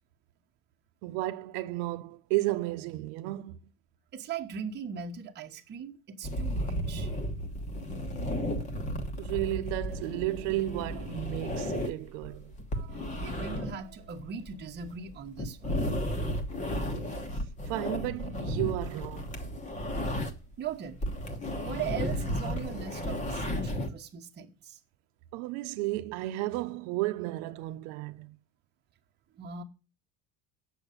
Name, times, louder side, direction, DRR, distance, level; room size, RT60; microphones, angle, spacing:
voice 1, 1.0-3.6 9.2-12.6 15.7-15.9 17.7-19.5 25.3-28.4, right 17 dB, 90° right, 0.9 m, -33 dB
voice 2, 4.1-7.1 12.7-15.8 20.6-21.0 21.6-24.8 29.3-29.6, right 7 dB, 25° right, 1.2 m, -39 dB
sound 1, 6.2-20.5 20.8-23.9, equal, 20° left, 1.2 m, -34 dB
8.9 x 6.8 x 8.2 m
cardioid pair, 170°, 37 cm